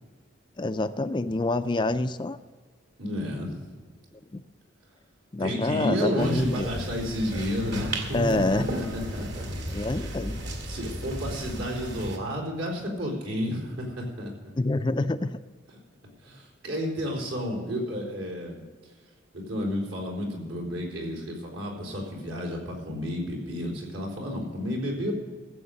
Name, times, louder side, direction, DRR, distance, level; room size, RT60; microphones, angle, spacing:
voice 1, 0.6-2.4 4.3-4.4 5.3-6.7 8.1-8.7 9.7-10.4 14.6-15.4, left 2 dB, 20° left, 10 dB, 0.4 m, -27 dB
voice 2, 3.0-3.7 5.4-9.3 9.9-10.0 10.7-14.3 16.2-18.7 19.3-25.1, equal, 75° right, 0 dB, 4.0 m, -31 dB
sound 1, 6.2-12.2, right 1 dB, 55° right, 2.1 m, -35 dB
15.0 x 7.9 x 6.5 m, 1.5 s
head